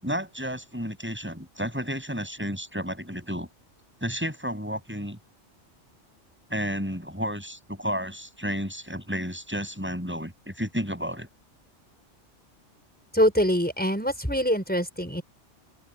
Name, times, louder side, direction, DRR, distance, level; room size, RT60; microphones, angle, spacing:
voice 1, 0.0-3.5 4.0-5.2 6.5-11.3, equal, 10° right, 7.6 m, -32 dB
voice 2, 13.1-15.2, equal, 5° left, 5.4 m, -24 dB
open air
omnidirectional pair, 1.2 m